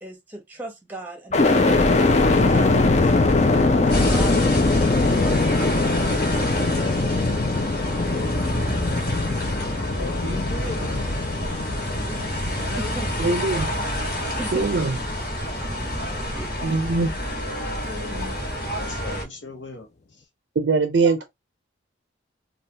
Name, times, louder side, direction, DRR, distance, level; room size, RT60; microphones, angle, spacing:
voice 1, 0.0-3.4 3.8-6.5 12.0-12.5 12.8-13.1 14.4-14.9 16.3-16.7 21.0-21.2, right 2 dB, 10° right, 0.9 m, -38 dB
sound 1, 1.3-15.3 15.8-16.6, left 3 dB, 35° left, 0.4 m, -22 dB
sound 2, 3.9-19.2, equal, 50° left, 1.4 m, -29 dB
sound 3, 4.6-19.2, equal, 20° left, 0.9 m, -39 dB
voice 2, 8.0-8.8 9.6-11.0 12.6-13.4 16.6-17.2 17.8-18.4 18.8-19.9, left 2 dB, 80° left, 1.0 m, -38 dB
voice 3, 13.2-13.7 14.5-14.9 16.6-17.1 20.6-21.2, right 4 dB, 65° right, 0.4 m, -21 dB
3.3 x 2.3 x 2.7 m
head